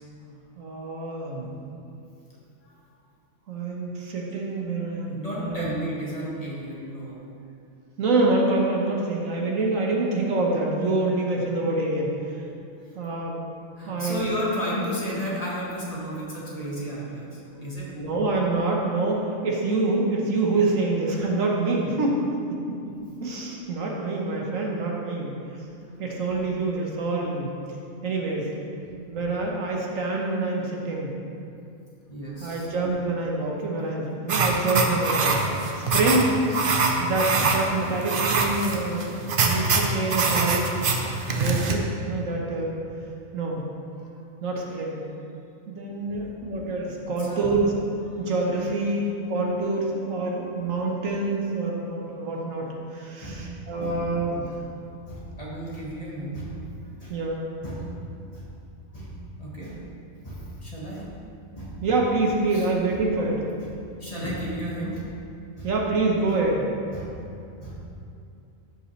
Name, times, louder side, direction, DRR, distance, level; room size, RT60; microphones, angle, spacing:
voice 1, 0.2-1.5 3.5-5.7 8.0-12.1 12.9-13.4 13.8-14.3 17.9-22.4 22.7-22.8 23.2-25.3 26.0-27.5 28.0-28.5 29.1-31.1 32.4-35.4 35.8-36.3 37.0-39.1 39.4-40.7 41.3-42.8 43.3-43.6 44.4-45.0 45.7-47.7 48.2-54.5 57.1-57.4 61.8-63.4 65.6-66.7, right 2 dB, 70° right, -1 dB, 1.5 m, -26 dB
voice 2, 5.1-7.2 13.7-17.9 32.1-32.7 36.4-36.7 44.0-44.1 46.1-46.2 47.2-47.5 48.1-48.2 48.8-49.1 53.2-54.1 54.5-54.6 55.0-56.6 57.0-57.2 57.6-57.9 58.3-58.5 58.9-59.9 60.2-61.2 61.5-61.8 62.5-62.7 63.6-65.1 65.6-65.7 66.9-67.1 67.6-67.9, equal, 25° left, -6 dB, 1.6 m, -34 dB
sound 1, 34.3-41.7, right 3 dB, 50° right, 0.8 m, -24 dB
13.0 x 5.4 x 3.3 m, 2.5 s
omnidirectional pair, 1.4 m